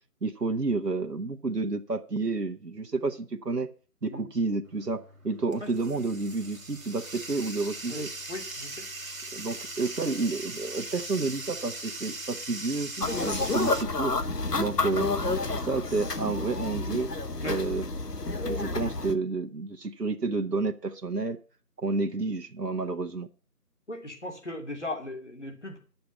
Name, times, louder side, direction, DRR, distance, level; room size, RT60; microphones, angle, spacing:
voice 1, 0.2-3.7 4.0-8.1 9.3-14.1 14.6-17.1 17.4-17.8 18.2-21.4 21.8-23.3, right 3 dB, 85° right, 4 dB, 1.3 m, -30 dB
Bathtub (filling or washing), 4.6-13.8, right 2 dB, 60° right, 1.3 m, -40 dB
voice 2, 8.3-8.9 16.7-16.9 17.4-17.6 23.9-25.8, left 1 dB, 45° left, 2 dB, 2.8 m, -37 dB
sound 1, 13.0-19.1, left 3 dB, 85° left, 1.2 m, -30 dB
10.5 x 7.0 x 8.2 m, 0.39 s
figure-of-eight pair, 175°, 47 cm